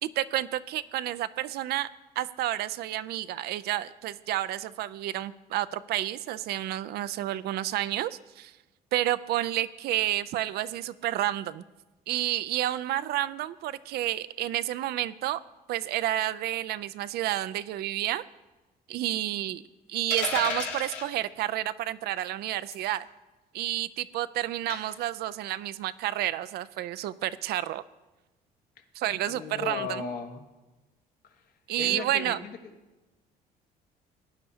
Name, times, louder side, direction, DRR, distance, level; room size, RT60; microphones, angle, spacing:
voice 1, 0.0-1.9 2.2-8.6 8.9-11.6 12.1-15.4 15.7-18.2 18.9-19.6 19.9-23.1 23.5-27.8 28.9-30.1 31.7-32.4, right 13 dB, 70° right, 16 dB, 0.4 m, -30 dB
sound 1, 20.1-21.1 22.7-23.0 24.7-25.0, left 5 dB, 90° left, 2.4 m, -33 dB
voice 2, 29.2-30.4 31.3-31.4 31.8-32.5, left 6 dB, 65° left, 5 dB, 1.3 m, -36 dB
17.5 x 9.8 x 2.8 m, 1.1 s
cardioid pair, 110°, 17 cm